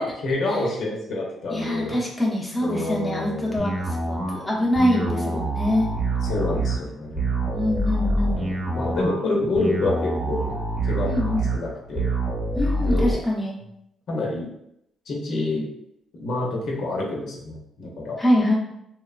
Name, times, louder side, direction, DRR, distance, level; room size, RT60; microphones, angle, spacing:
voice 1, 0.0-2.0 2.6-3.6 4.9-5.5 6.3-7.5 8.3-10.5 10.9-11.2 11.5-12.1 12.8-13.1 14.1-14.5 15.1-15.7 16.1-18.2, left 2 dB, 65° left, -2 dB, 0.7 m, -28 dB
voice 2, 1.5-5.9 7.5-8.4 11.0-11.5 12.6-13.6 18.2-18.6, left 1 dB, 10° left, -4 dB, 0.8 m, -24 dB
sound 1, 3.6-13.2, right 1 dB, 20° right, 0.9 m, -26 dB
2.9 x 2.1 x 2.4 m, 0.78 s
cardioid pair, 90°, 0 cm